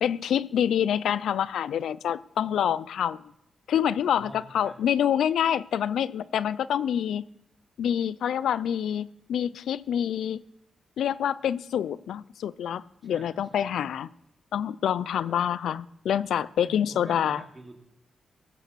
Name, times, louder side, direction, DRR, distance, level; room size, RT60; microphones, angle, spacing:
voice 1, 0.0-3.3 3.7-7.3 7.8-10.4 11.0-14.1 14.5-17.4, left 9 dB, 90° left, 18 dB, 0.4 m, -27 dB
voice 2, 4.1-4.7 13.0-13.8 15.2-15.5 16.6-17.8, right 2 dB, 30° right, 2 dB, 3.3 m, -47 dB
16.0 x 6.7 x 6.8 m, 0.82 s
cardioid pair, 90°, 0 cm